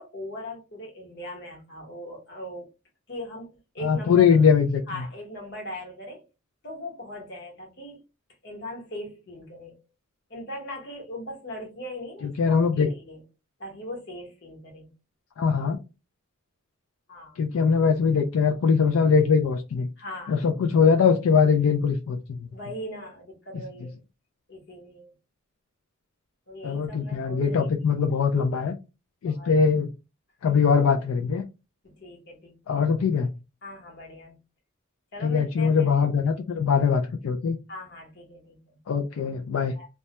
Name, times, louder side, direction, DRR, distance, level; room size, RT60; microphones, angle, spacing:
voice 1, 0.0-2.7 3.1-4.5 4.9-6.3 6.6-8.0 8.4-9.8 10.3-13.2 13.6-14.9 17.1-17.4 20.0-20.4 22.5-24.0 24.5-25.1 26.5-27.7 29.2-29.5 31.8-32.8 33.6-34.4 35.1-35.9 37.7-38.6 39.7-39.9, left 1 dB, 50° left, 1.0 m, -39 dB
voice 2, 3.8-5.0 12.2-12.9 15.4-15.8 17.4-19.9 20.3-22.5 26.6-28.8 29.2-29.9 30.4-31.4 32.7-33.3 35.2-37.6 38.9-39.7, left 6 dB, 75° left, 0.3 m, -22 dB
2.2 x 2.1 x 2.8 m
head